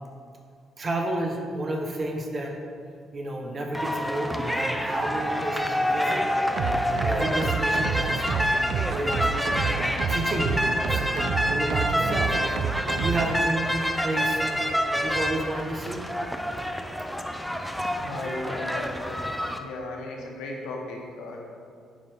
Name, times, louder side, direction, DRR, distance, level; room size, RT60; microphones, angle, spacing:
voice 1, 0.8-2.5 3.1-6.2 6.5-6.6 6.9-9.7 10.1-16.0, right 1 dB, 40° right, 1 dB, 1.0 m, -31 dB
sound 1, 3.7-19.6, equal, ahead, 0.5 m, -27 dB
sound 2, 6.6-13.4, right 7 dB, 75° right, 0.3 m, -29 dB
voice 2, 17.8-19.3 19.5-21.5, left 2 dB, 90° left, 0 dB, 1.2 m, -36 dB
8.7 x 5.3 x 3.6 m, 2.2 s
cardioid pair, 90°, 0 cm